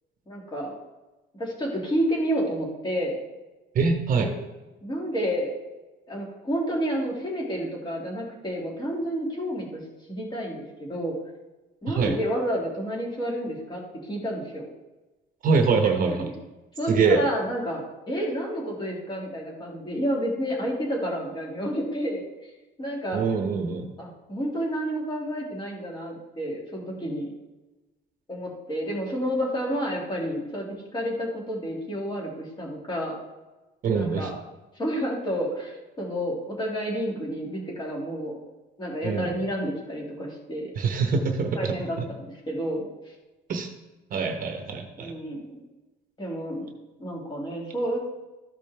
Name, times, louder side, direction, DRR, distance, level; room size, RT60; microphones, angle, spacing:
voice 1, 0.3-0.7 1.4-3.1 4.2-4.3 4.8-5.5 6.1-9.8 10.1-11.1 11.8-14.7 16.1-16.2 16.8-22.5 22.8-23.2 24.0-27.3 28.3-30.7 30.9-33.1 33.9-34.4 34.7-38.4 38.8-40.7 41.5-43.1 45.0-45.6 46.2-46.7 47.0-48.0, equal, 20° left, -3 dB, 2.2 m, -30 dB
voice 2, 3.7-4.3 11.9-12.2 15.4-16.3 16.9-17.2 23.1-23.9 33.8-34.3 39.0-39.3 40.8-42.1 43.5-43.7 44.1-45.1, right 5 dB, 45° right, 4 dB, 1.0 m, -24 dB
13.5 x 5.2 x 3.4 m, 1.1 s
cardioid pair, 160°, 19 cm